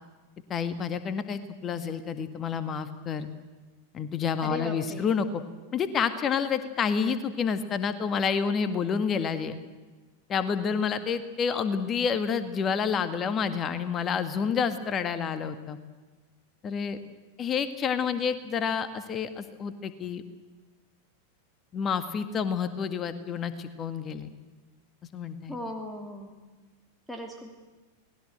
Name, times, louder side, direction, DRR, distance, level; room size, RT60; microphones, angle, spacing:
voice 1, 0.5-3.3 3.9-5.4 5.7-9.6 10.3-15.8 16.6-17.0 17.4-20.2 21.7-24.3 25.1-25.6, left 6 dB, 25° left, 11 dB, 1.8 m, -29 dB
voice 2, 4.4-5.1 25.5-26.3 27.1-27.5, left 1 dB, 5° left, 3 dB, 2.8 m, -37 dB
28.5 x 20.0 x 7.9 m, 1.3 s
figure-of-eight pair, 90°, 0 cm